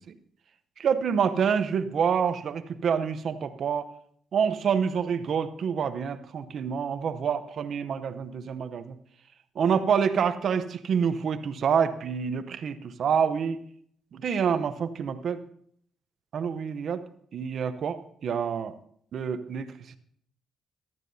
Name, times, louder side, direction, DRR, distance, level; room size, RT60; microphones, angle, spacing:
voice 1, 0.8-3.9 4.3-9.0 9.6-13.6 14.1-15.4 16.3-17.0 17.3-18.7 19.1-19.7, right 7 dB, 60° right, 12 dB, 0.8 m, -27 dB
14.5 x 12.0 x 2.7 m, 0.65 s
cardioid pair, 90°, 0 cm